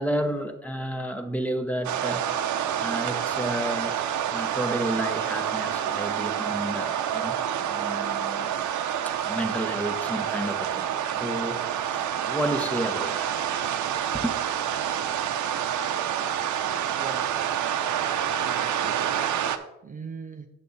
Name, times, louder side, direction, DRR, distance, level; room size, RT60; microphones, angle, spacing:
voice 1, 0.0-4.0 4.3-7.3 7.7-8.5 9.0-13.3 14.2-14.3, right 1 dB, 5° left, 6 dB, 1.0 m, -31 dB
sound 1, 1.8-19.6, right 9 dB, 75° right, 0.7 m, -28 dB
voice 2, 17.0-17.3 17.9-19.0 19.8-20.5, right 5 dB, 25° right, 5 dB, 0.5 m, -41 dB
8.6 x 6.5 x 4.0 m, 0.93 s
cardioid pair, 90°, 30 cm